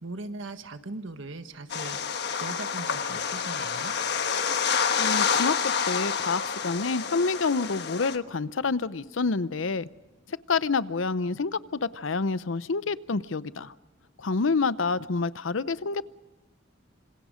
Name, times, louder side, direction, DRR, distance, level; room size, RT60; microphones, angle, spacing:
voice 1, 0.0-3.9, right 2 dB, 75° right, 9 dB, 1.5 m, -39 dB
sound 1, 1.7-8.2, left 6 dB, 60° left, 1.3 m, -28 dB
voice 2, 5.0-9.9 10.3-13.7 14.2-16.0, left 4 dB, 80° left, 16 dB, 0.7 m, -28 dB
27.5 x 26.0 x 5.1 m, 1.2 s
head